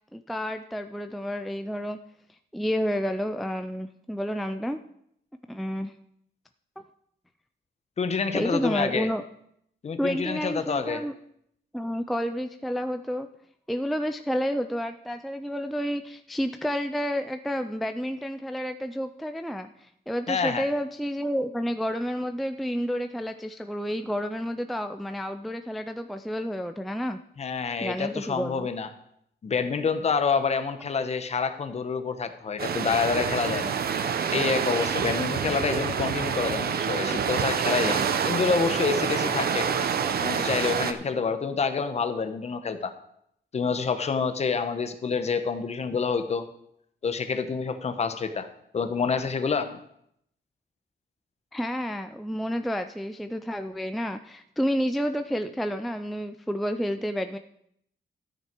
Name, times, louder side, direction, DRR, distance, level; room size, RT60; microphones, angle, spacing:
voice 1, 0.1-2.0 2.5-4.8 5.5-5.9 8.3-9.2 10.0-11.1 11.7-13.3 13.7-27.2 27.8-28.7 51.5-57.4, equal, ahead, 7 dB, 0.4 m, -30 dB
voice 2, 8.0-9.1 9.8-11.0 20.3-20.7 27.4-28.9 29.4-33.7 34.3-39.7 40.2-42.9 43.5-46.5 47.0-48.5 48.7-49.8, left 5 dB, 35° left, 9 dB, 0.9 m, -27 dB
sound 1, 32.6-40.9, right 7 dB, 60° right, 0.8 m, -27 dB
13.0 x 9.3 x 4.5 m, 0.72 s
wide cardioid pair, 175°, 18 cm